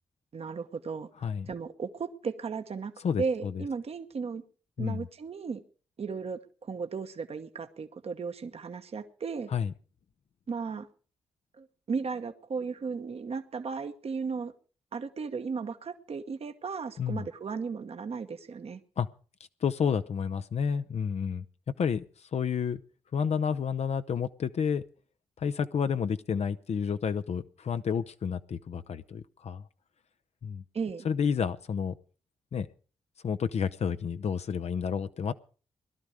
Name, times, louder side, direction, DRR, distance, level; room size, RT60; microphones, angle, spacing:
voice 1, 0.3-1.1 1.5-2.9 3.2-4.4 4.8-5.6 6.0-9.5 10.5-10.9 11.6-14.5 14.9-18.8 30.7-31.1, right 5 dB, 50° right, 7 dB, 1.0 m, -35 dB
voice 2, 3.0-3.6 4.8-5.1 9.5-9.7 17.0-17.3 19.0-19.1 19.6-21.4 21.8-22.0 22.3-22.8 23.1-24.8 25.4-29.6 30.4-30.6 31.0-31.9 32.5-32.7 33.2-35.3, left 7 dB, 55° left, 11 dB, 0.6 m, -30 dB
18.0 x 11.5 x 4.9 m, 0.39 s
supercardioid pair, 40°, 13 cm